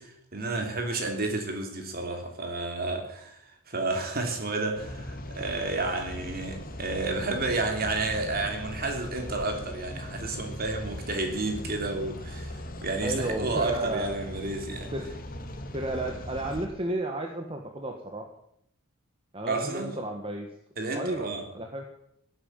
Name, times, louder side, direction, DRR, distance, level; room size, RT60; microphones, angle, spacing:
voice 1, 0.0-3.4 3.7-12.5 12.8-14.9 19.5-20.0 20.8-21.4, right 3 dB, 45° right, 4 dB, 3.1 m, -31 dB
sound 1, 4.8-16.6, left 1 dB, 40° left, 1.7 m, -39 dB
voice 2, 13.0-14.1 14.9-15.0 15.7-18.3 19.3-20.5 20.9-21.8, right 1 dB, 25° right, 2 dB, 1.5 m, -33 dB
17.0 x 8.9 x 9.2 m, 0.75 s
head